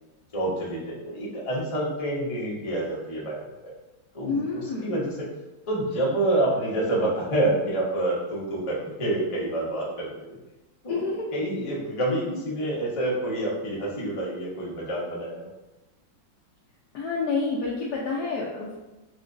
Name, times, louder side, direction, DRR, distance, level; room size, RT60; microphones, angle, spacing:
voice 1, 0.3-3.7 4.1-5.3 5.7-10.4 10.8-11.0 11.3-15.5, right 1 dB, 35° left, -6 dB, 0.5 m, -28 dB
voice 2, 4.3-4.9 10.9-11.3 16.9-18.8, left 4 dB, 75° left, -4 dB, 0.9 m, -29 dB
5.6 x 2.2 x 2.5 m, 1.0 s
omnidirectional pair, 2.1 m